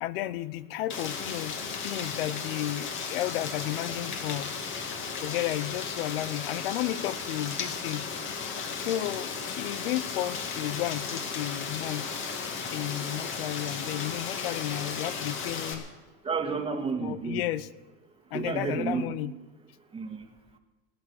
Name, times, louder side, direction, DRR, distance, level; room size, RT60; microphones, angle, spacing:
voice 1, 0.0-1.6 1.8-4.5 5.2-8.1 8.8-12.1 12.7-15.8 17.0-17.7 18.3-19.3, left 14 dB, 85° left, 17 dB, 0.7 m, -33 dB
Rain, 0.9-15.7, left 5 dB, 40° left, 2.4 m, -35 dB
voice 2, 16.2-17.5 18.3-19.2 19.9-20.3, right 5 dB, 20° right, 6 dB, 1.6 m, -31 dB
19.5 x 9.1 x 7.0 m, 1.2 s
supercardioid pair, 125°, 29 cm